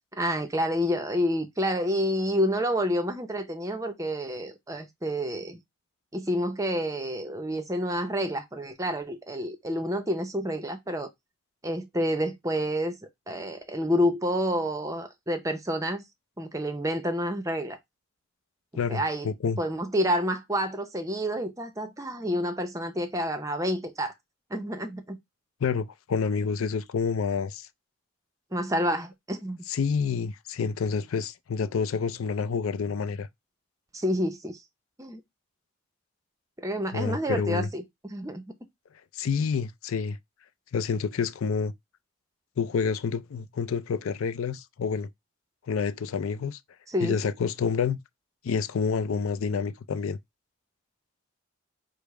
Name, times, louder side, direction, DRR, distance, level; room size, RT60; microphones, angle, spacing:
voice 1, 0.2-5.6 6.1-11.1 11.6-13.0 13.3-16.0 16.4-17.8 18.7-19.3 19.6-24.1 24.5-25.2 28.5-29.6 33.9-34.6 35.0-35.2 36.6-37.8 38.1-38.4 46.9-47.2, equal, 15° right, 0.6 m, -29 dB
voice 2, 18.8-19.6 25.6-27.7 29.7-33.3 36.9-37.7 39.1-40.2 40.7-41.7 42.6-45.1 45.7-46.6 47.0-48.0 48.4-50.2, left 5 dB, 75° left, 0.4 m, -28 dB
5.1 x 2.0 x 4.7 m
head